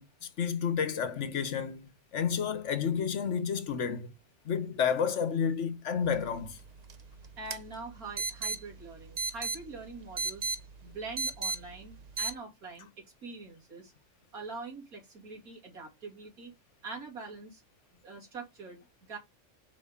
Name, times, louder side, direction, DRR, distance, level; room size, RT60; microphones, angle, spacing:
voice 1, 0.0-4.1 4.4-6.6, left 7 dB, 60° left, 1.1 m, -31 dB
sound 1, 6.0-12.3, right 4 dB, 55° right, 0.4 m, -38 dB
voice 2, 7.4-10.5 10.8-13.9 14.3-16.5 16.8-17.6 17.9-19.2, right 3 dB, 90° right, 3.0 m, -44 dB
5.7 x 4.9 x 3.6 m
omnidirectional pair, 1.5 m